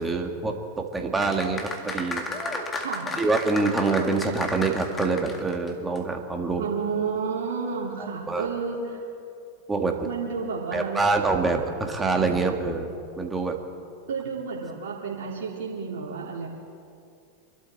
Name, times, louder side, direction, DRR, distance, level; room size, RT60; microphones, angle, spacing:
voice 1, 0.0-2.2 3.2-6.7 8.0-8.5 9.7-10.0 10.7-13.6, right 3 dB, 15° right, 3 dB, 2.0 m, -26 dB
sound 1, 1.2-5.7 6.0-6.1, left 2 dB, 20° left, 2.1 m, -33 dB
voice 2, 6.6-9.0 10.0-11.0 14.1-16.5, right 5 dB, 70° right, -4 dB, 3.0 m, -31 dB
26.0 x 12.0 x 4.2 m, 2.4 s
hypercardioid pair, 95°, 0 cm